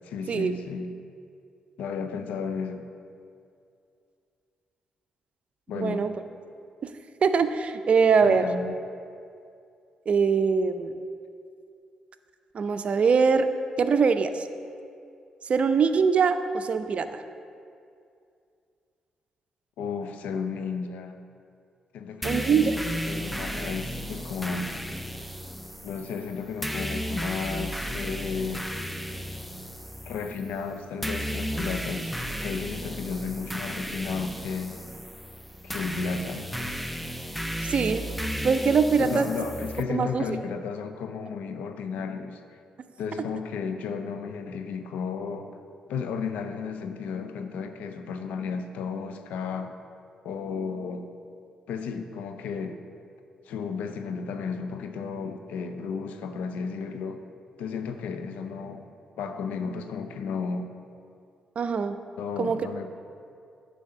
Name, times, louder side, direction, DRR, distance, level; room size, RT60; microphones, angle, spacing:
voice 1, 0.0-0.9 1.8-2.9 5.7-6.1 8.2-8.8 19.8-21.2 21.9-24.8 25.8-28.6 30.0-34.8 35.6-36.5 39.0-42.4 43.0-45.5 45.9-49.7 50.2-51.1 51.7-52.8 53.5-57.2 57.6-58.9 59.2-60.7 62.2-62.9, left 5 dB, 80° left, 7 dB, 0.5 m, -33 dB
voice 2, 5.7-6.1 6.8-6.9 7.2-8.5 10.1-10.9 12.5-13.5 13.8-14.5 15.4-17.2 22.2-22.8 37.7-38.1 38.4-39.3 39.9-40.4 61.6-62.0 62.4-62.6, right 5 dB, 55° right, 10 dB, 0.5 m, -23 dB
sound 1, 22.2-39.8, equal, ahead, 0.5 m, -34 dB
9.6 x 3.4 x 6.5 m, 2.4 s
supercardioid pair, 55°, 2 cm